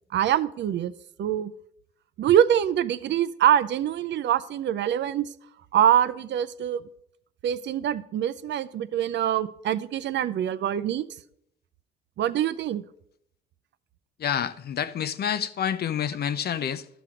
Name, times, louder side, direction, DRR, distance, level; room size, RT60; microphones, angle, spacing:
voice 1, 0.1-0.9 1.2-1.5 2.2-5.3 5.7-6.8 7.4-11.1 12.2-12.8, right 10 dB, 65° right, 0.5 m, -24 dB
voice 2, 14.2-16.9, left 9 dB, 55° left, 0.6 m, -28 dB
12.0 x 5.9 x 5.0 m
cardioid pair, 90°, 20 cm